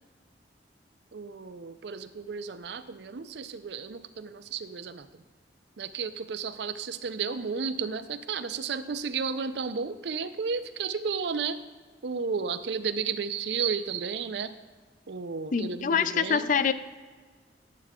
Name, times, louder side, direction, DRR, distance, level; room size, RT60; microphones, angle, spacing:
voice 1, 1.1-5.1 5.8-11.6 12.0-14.5 15.1-16.5, right 5 dB, 65° right, 12 dB, 0.5 m, -33 dB
voice 2, 15.5-16.7, left 6 dB, 45° left, 14 dB, 0.4 m, -25 dB
10.5 x 7.7 x 3.7 m, 1.5 s
head